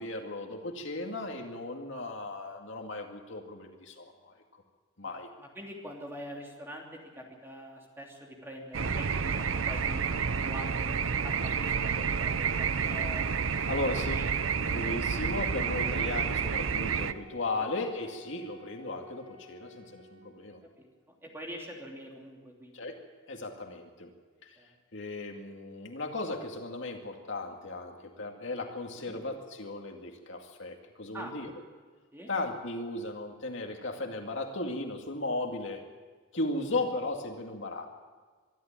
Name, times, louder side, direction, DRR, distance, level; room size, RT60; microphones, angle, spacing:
voice 1, 0.0-4.6 5.0-5.3 13.7-14.2 14.7-20.6 22.7-23.0 23.3-24.1 24.4-24.5 24.9-31.5 32.3-35.8 36.3-37.9, left 2 dB, 65° left, 3 dB, 2.2 m, -36 dB
voice 2, 5.4-13.2 13.8-14.2 14.6-14.7 17.5-17.6 20.6-20.9 21.2-22.9 24.6-24.7 29.0-29.2 31.1-31.3 32.1-32.3, equal, 10° right, -1 dB, 3.1 m, -44 dB
sound 1, 8.7-17.1, right 6 dB, 80° right, 0.7 m, -30 dB
Wind instrument woodwind instrument, 15.6-20.5, left 2 dB, 45° right, 3.0 m, -52 dB
24.5 x 12.0 x 8.9 m, 1.5 s
head